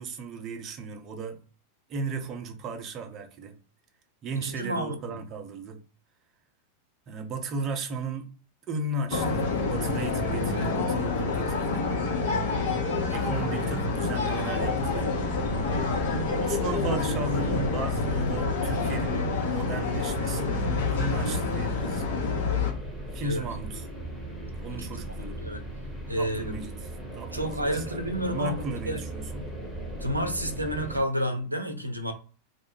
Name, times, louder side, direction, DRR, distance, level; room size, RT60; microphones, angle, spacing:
voice 1, 0.0-1.4 1.9-3.6 4.2-5.8 7.1-8.3 8.7-11.9 13.1-15.1 16.3-22.0 23.1-23.8 24.6-25.4 26.2-29.5, right 3 dB, 30° right, 0.5 m, -35 dB
voice 2, 4.4-5.2 23.2-23.4 24.7-24.9 25.2-25.6 26.1-26.6 27.3-29.0 30.0-32.1, equal, 85° right, 0.5 m, -30 dB
sound 1, 9.1-22.7, left 4 dB, 55° left, 0.8 m, -28 dB
sound 2, 14.5-31.0, right 1 dB, 5° right, 1.0 m, -38 dB
2.3 x 2.1 x 3.1 m
figure-of-eight pair, 90°, 0 cm